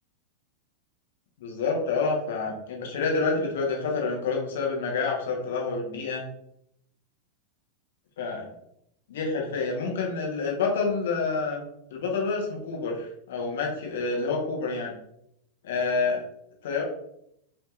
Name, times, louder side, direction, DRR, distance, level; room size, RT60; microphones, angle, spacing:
voice 1, 1.4-6.2 8.2-8.5 9.1-11.6 11.9-14.9 15.6-16.2 16.6-16.9, left 4 dB, 60° left, 0 dB, 1.3 m, -28 dB
6.0 x 3.4 x 2.5 m, 0.74 s
figure-of-eight pair, 90°, 0 cm